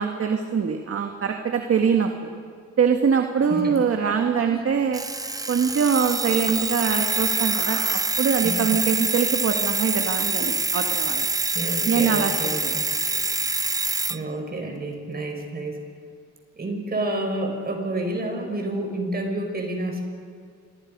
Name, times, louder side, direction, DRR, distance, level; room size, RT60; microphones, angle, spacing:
voice 1, 0.0-2.3 2.8-5.0 5.5-11.3 11.9-12.3 12.6-12.8, right 6 dB, 50° right, 4 dB, 1.8 m, -23 dB
Alarm, 4.9-14.2, right 3 dB, 10° right, 0.7 m, -25 dB
voice 2, 11.5-12.9 14.1-15.8 16.6-20.0, right 1 dB, 30° right, 3 dB, 5.6 m, -29 dB
28.0 x 23.0 x 5.5 m, 2.2 s
cardioid pair, 90°, 30 cm